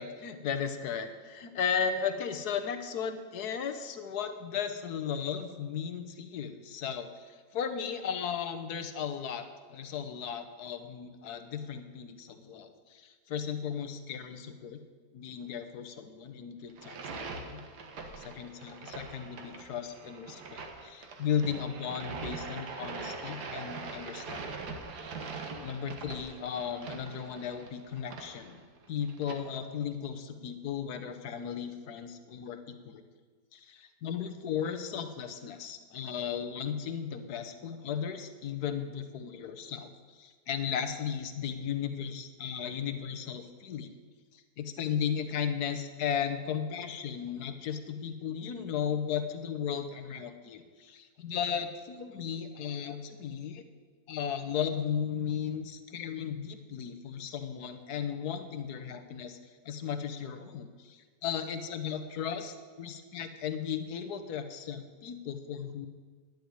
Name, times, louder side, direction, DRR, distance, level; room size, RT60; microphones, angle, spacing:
voice 1, 0.0-14.8 15.1-17.6 18.2-24.7 25.0-25.1 25.6-28.6 28.9-33.0 33.5-43.9 44.3-53.6 54.1-59.4 59.6-65.9, left 7 dB, 75° left, 9 dB, 1.4 m, -36 dB
sound 1, 16.7-29.4, right 4 dB, 80° right, 1.9 m, -42 dB
10.5 x 7.1 x 9.4 m, 1.5 s
omnidirectional pair, 1.7 m